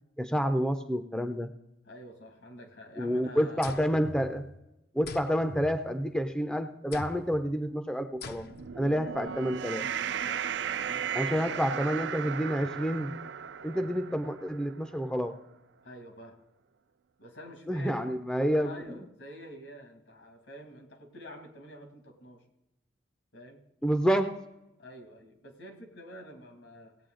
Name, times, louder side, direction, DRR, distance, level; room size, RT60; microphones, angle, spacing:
voice 1, 0.2-1.5 3.0-4.5 4.9-8.5 8.8-9.9 11.1-13.1 13.6-15.4 17.7-19.0 23.8-24.4, equal, 5° left, 8 dB, 0.5 m, -29 dB
voice 2, 1.8-3.7 10.3-10.5 10.9-11.8 13.7-13.9 15.8-16.4 17.2-18.2 18.5-22.4 23.3-23.6 24.8-27.0, equal, 75° left, 5 dB, 2.3 m, -48 dB
sound 1, 3.6-4.7 5.1-6.3 6.9-7.5 8.2-8.8, left 3 dB, 55° left, 0.6 m, -43 dB
sound 2, 8.4-14.9, right 8 dB, 65° right, 0.4 m, -36 dB
17.5 x 8.6 x 3.8 m, 0.90 s
head